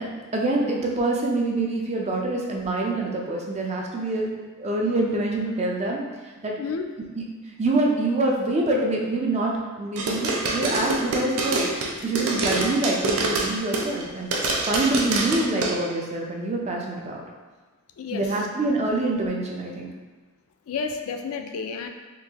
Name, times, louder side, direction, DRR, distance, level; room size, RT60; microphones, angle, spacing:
voice 1, 0.0-4.3 4.6-6.0 6.4-6.5 7.2-11.7 12.0-14.3 14.7-17.2 18.1-19.9, right 2 dB, 30° right, -1 dB, 0.4 m, -25 dB
sound 1, 10.0-14.0 14.3-15.7, right 3 dB, 85° right, 0.5 m, -25 dB
voice 2, 18.0-18.3 20.7-21.9, left 5 dB, 80° left, 5 dB, 0.3 m, -30 dB
3.8 x 2.6 x 2.8 m, 1.3 s
head